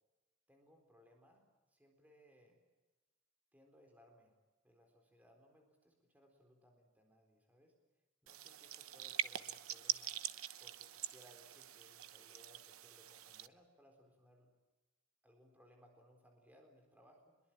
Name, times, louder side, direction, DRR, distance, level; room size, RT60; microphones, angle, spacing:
voice 1, 0.5-2.6 3.5-4.3 4.6-7.7 8.2-10.2 10.6-14.5 15.2-17.4, equal, 10° right, 2 dB, 4.1 m, -66 dB
sound 1, 8.3-13.5, right 11 dB, 90° right, 1.0 m, -44 dB
23.5 x 22.0 x 8.9 m, 1.1 s
head